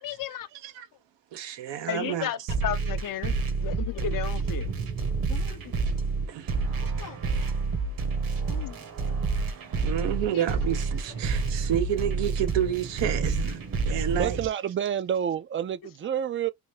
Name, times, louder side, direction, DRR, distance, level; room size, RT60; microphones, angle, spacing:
voice 1, 0.0-0.5 1.9-3.3 3.6-4.7 5.3-5.6 6.6-6.7 7.0-7.2 8.5-8.8 10.3-10.4, left 10 dB, 50° left, 0.6 m, -34 dB
voice 2, 1.3-2.3 6.3-6.5 9.8-13.6 13.9-14.4, right 10 dB, 90° right, 0.8 m, -29 dB
sound 1, 2.5-14.5, right 4 dB, 55° right, 1.1 m, -29 dB
voice 3, 14.1-16.5, right 9 dB, 30° right, 0.4 m, -28 dB
3.4 x 2.6 x 3.2 m
cardioid pair, 95°, 42 cm